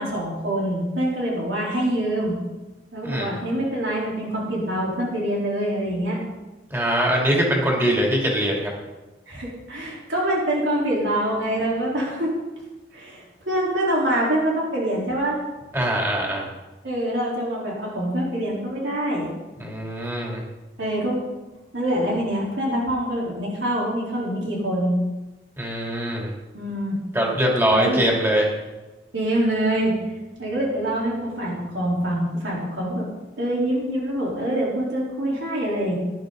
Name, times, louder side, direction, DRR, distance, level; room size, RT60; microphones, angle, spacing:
voice 1, 0.0-2.4 2.9-6.2 9.3-12.3 12.9-15.4 16.8-19.3 20.8-21.2 21.7-25.0 26.5-27.0 27.7-28.0 29.1-29.9 30.4-33.0 33.4-36.0, right 1 dB, 90° right, -4 dB, 4.0 m, -25 dB
voice 2, 6.7-8.7 15.7-16.5 19.6-20.4 25.6-26.3 27.1-28.5, equal, 15° right, -2 dB, 2.9 m, -22 dB
18.0 x 11.5 x 4.0 m, 1.1 s
head